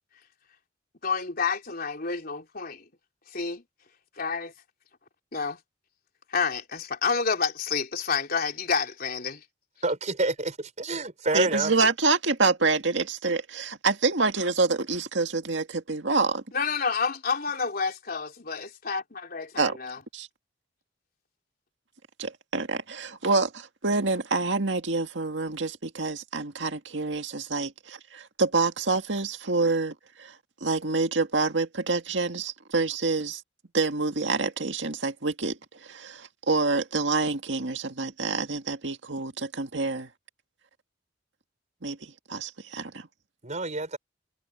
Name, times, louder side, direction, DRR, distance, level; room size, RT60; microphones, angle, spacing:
voice 1, 1.0-2.9 3.3-3.6 4.2-4.5 5.3-5.6 6.3-9.4 16.5-20.0, left 5 dB, 55° left, 3.6 m, -29 dB
voice 2, 9.8-10.3 10.9-11.7 43.4-44.0, right 2 dB, 40° right, 5.0 m, -27 dB
voice 3, 11.3-16.4 19.6-19.8 20.1-20.3 22.2-30.4 30.6-33.4 33.7-40.1 41.8-43.1, right 3 dB, 75° right, 2.0 m, -27 dB
head